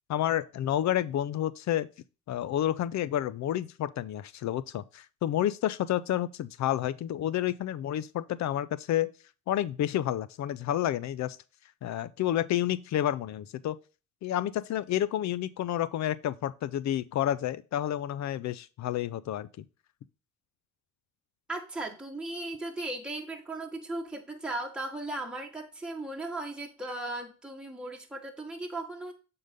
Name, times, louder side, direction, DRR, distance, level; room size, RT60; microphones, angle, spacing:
voice 1, 0.1-1.9 2.3-9.1 9.5-11.4 11.8-13.8 14.2-19.5, left 12 dB, 65° left, 0.6 m, -30 dB
voice 2, 21.5-29.1, right 2 dB, 5° right, 1.5 m, -37 dB
7.8 x 3.9 x 5.1 m
cardioid pair, 90°, 30 cm